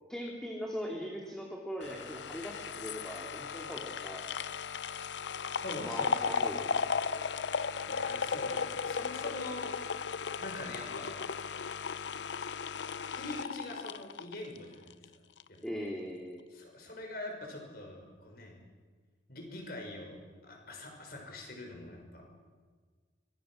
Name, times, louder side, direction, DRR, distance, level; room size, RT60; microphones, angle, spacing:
voice 1, 0.1-4.2 5.8-7.3 15.6-16.4, equal, 5° left, -1 dB, 2.7 m, -40 dB
sound 1, 1.8-15.0 15.4-15.5, left 5 dB, 85° left, 0.7 m, -36 dB
voice 2, 5.6-7.0 7.9-11.1 13.0-15.0 15.5-15.6 16.5-18.6 19.3-22.2, left 1 dB, 55° left, 2 dB, 6.1 m, -44 dB
24.5 x 23.5 x 6.4 m, 1.5 s
head